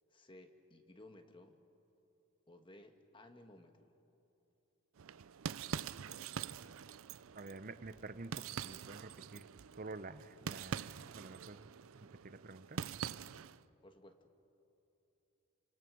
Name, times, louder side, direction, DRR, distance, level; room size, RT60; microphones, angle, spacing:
voice 1, 0.1-1.6 2.5-3.9 13.8-14.3, left 1 dB, 25° left, 6 dB, 1.5 m, -58 dB
sound 1, 5.0-13.6, right 7 dB, 80° right, 0.5 m, -45 dB
voice 2, 7.3-9.5 9.7-12.8, right 3 dB, 40° right, 12 dB, 0.8 m, -49 dB
28.5 x 25.5 x 6.3 m, 2.9 s
head